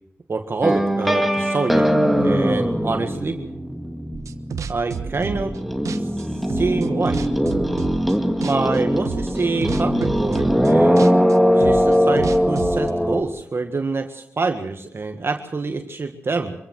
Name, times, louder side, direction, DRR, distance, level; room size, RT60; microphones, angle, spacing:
voice 1, 0.3-1.9 2.2-3.4 4.7-5.5 6.0-7.2 8.4-11.0 11.5-16.5, right 3 dB, 50° right, 6 dB, 1.7 m, -26 dB
sound 1, 0.6-4.7 5.0-13.2, equal, ahead, 2.0 m, -20 dB
sound 2, 4.1-5.6 5.8-8.2 8.4-8.8 9.0-12.9, right 6 dB, 80° right, 1.2 m, -31 dB
25.5 x 15.0 x 7.7 m, 0.76 s
cardioid pair, 50°, 5 cm